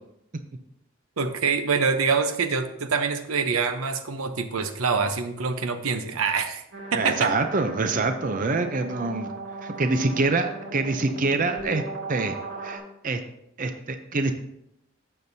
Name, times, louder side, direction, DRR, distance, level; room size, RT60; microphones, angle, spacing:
voice 1, 1.2-6.6 6.9-7.3, right 5 dB, 90° right, 9 dB, 0.8 m, -25 dB
sound 1, 6.7-12.8, right 2 dB, 60° right, 2.2 m, -37 dB
voice 2, 6.9-9.3 9.6-11.8 12.1-12.3 12.6-13.2 13.6-14.3, right 3 dB, 40° right, 7 dB, 0.5 m, -25 dB
12.0 x 7.8 x 2.7 m, 0.80 s
head